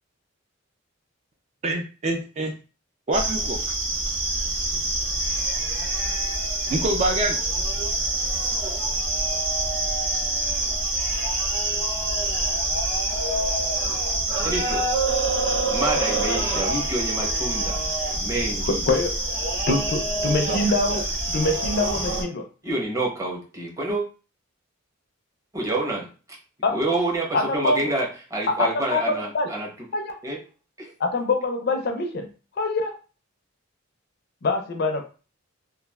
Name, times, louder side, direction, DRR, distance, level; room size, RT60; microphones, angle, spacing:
voice 1, 1.6-2.6 3.1-3.6 6.7-7.4 20.5-20.6 20.9-21.0, right 2 dB, 35° right, 2 dB, 0.3 m, -25 dB
sound 1, 3.1-22.2, right 2 dB, 65° right, 1.1 m, -26 dB
voice 2, 14.4-14.8 15.7-17.8 18.1-18.8 22.6-24.0 25.5-26.1 26.7-29.9 30.2-30.4 30.8-30.9, right 2 dB, 15° right, -2 dB, 0.7 m, -28 dB
voice 3, 18.6-19.2 19.7-22.4 26.6-26.8 27.3-27.8 28.5-29.0 29.3-29.5 29.9-30.2 31.0-32.3 32.6-32.9 34.4-35.0, left 2 dB, 50° left, 5 dB, 0.4 m, -24 dB
3.0 x 2.3 x 2.3 m, 0.35 s
head